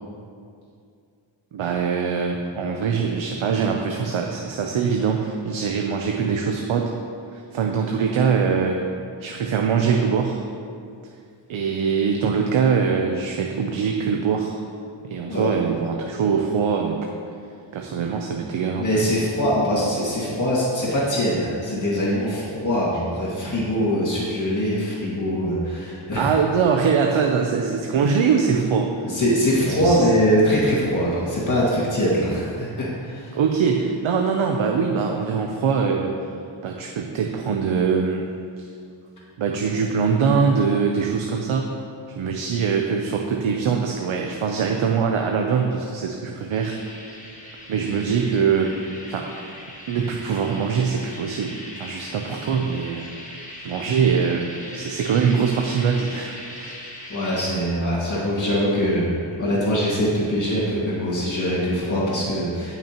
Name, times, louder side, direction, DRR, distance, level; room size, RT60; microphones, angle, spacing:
voice 1, 1.5-6.9 7.3-8.8 9.2-10.4 11.5-14.6 15.1-17.1 17.7-19.0 26.1-28.9 29.7-30.1 33.3-36.3 36.6-38.2 38.6-38.7 39.4-41.7 42.1-46.8 47.7-49.3 49.9-53.4 53.6-56.8, right 6 dB, 75° right, 2 dB, 0.7 m, -23 dB
voice 2, 18.8-26.3 29.0-33.4 57.1-59.1 59.4-62.8, equal, 40° left, -7 dB, 2.0 m, -22 dB
sound 1, 46.5-57.5, left 1 dB, 15° left, 1.4 m, -39 dB
17.5 x 6.0 x 3.0 m, 2.4 s
wide cardioid pair, 155°, 48 cm